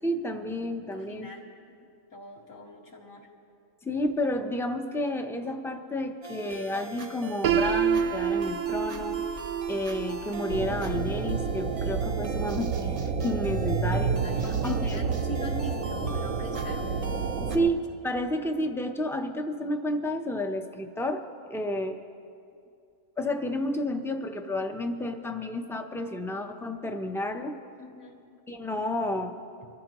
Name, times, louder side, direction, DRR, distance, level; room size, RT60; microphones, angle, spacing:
voice 1, 0.0-1.3 3.8-14.2 14.6-15.0 17.4-22.0 23.2-27.6 28.5-29.4, left 1 dB, 5° left, 5 dB, 0.3 m, -31 dB
voice 2, 0.9-1.5 2.1-3.3 13.9-16.9 27.8-28.2, left 1 dB, 70° left, -3 dB, 2.3 m, -43 dB
sound 1, 6.2-17.6, right 1 dB, 35° right, 0.6 m, -42 dB
Piano, 7.4-13.3, right 8 dB, 70° right, 0.9 m, -30 dB
sound 2, 10.5-17.7, right 5 dB, 85° right, 1.2 m, -29 dB
24.5 x 14.0 x 3.0 m, 2.5 s
omnidirectional pair, 1.4 m